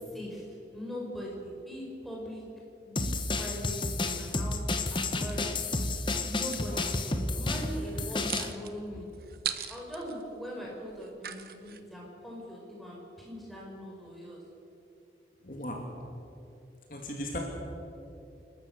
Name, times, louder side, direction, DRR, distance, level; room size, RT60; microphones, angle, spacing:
voice 1, 0.0-2.4 2.8-5.4 6.2-9.1 9.7-14.4, equal, ahead, -3 dB, 4.9 m, -41 dB
sound 1, 3.0-8.5, left 2 dB, 25° left, 1.0 m, -31 dB
sound 2, 5.3-6.7 7.7-11.8, right 10 dB, 55° right, 1.1 m, -40 dB
voice 2, 15.4-15.8 16.9-17.4, left 1 dB, 50° left, 0 dB, 2.7 m, -37 dB
29.5 x 13.0 x 6.8 m, 2.8 s
head